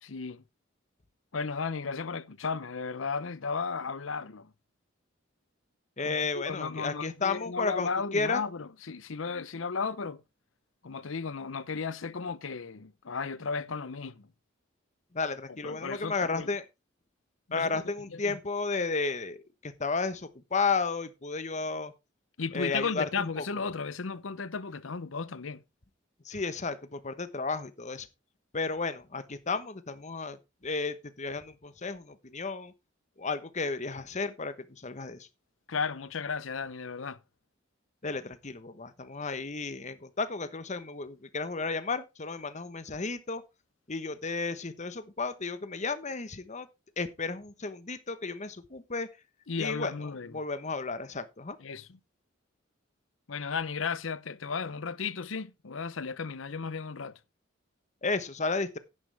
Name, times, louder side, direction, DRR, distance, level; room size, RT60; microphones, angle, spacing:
voice 1, 0.0-0.4 1.3-4.5 6.0-10.2 10.8-14.3 15.6-16.5 17.5-18.4 22.4-25.6 35.7-37.2 49.5-50.4 51.6-52.0 53.3-57.2, left 5 dB, 85° left, 0.8 m, -35 dB
voice 2, 6.0-8.4 15.1-16.6 17.5-19.4 19.6-21.9 22.5-23.4 26.2-28.1 28.5-30.4 30.6-32.7 33.2-35.3 38.0-43.4 43.9-46.7 47.0-49.1 49.6-51.6 58.0-58.8, left 4 dB, 35° left, 1.1 m, -33 dB
10.5 x 10.0 x 3.4 m
head